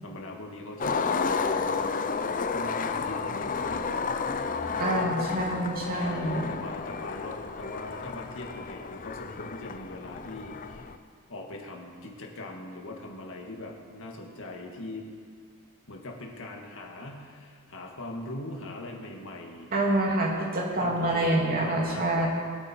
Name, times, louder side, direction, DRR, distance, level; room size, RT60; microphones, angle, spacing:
voice 1, 0.0-1.2 2.3-4.4 5.9-10.9 11.3-15.1 15.9-19.8 20.8-22.3, left 1 dB, 65° left, 0 dB, 2.2 m, -41 dB
Skateboard, 0.8-11.0, left 5 dB, 40° left, 0.6 m, -31 dB
voice 2, 4.8-6.5 19.7-22.3, right 1 dB, 45° right, -2 dB, 2.6 m, -26 dB
22.5 x 8.7 x 4.7 m, 2.1 s
head